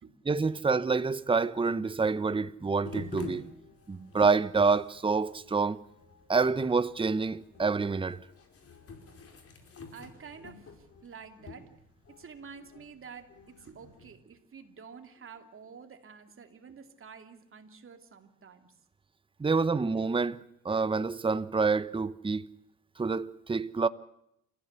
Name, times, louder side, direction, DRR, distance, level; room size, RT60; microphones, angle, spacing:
voice 1, 0.3-3.5 3.9-5.8 6.3-8.2 19.4-20.4 20.6-22.5 23.0-23.9, right 4 dB, 15° right, 0.9 m, -27 dB
sound 1, 2.8-14.2, left 3 dB, 50° left, 4.8 m, -49 dB
voice 2, 9.9-11.7 12.1-18.8, right 6 dB, 45° right, 3.0 m, -49 dB
28.0 x 15.0 x 8.2 m
cardioid pair, 90°, 30 cm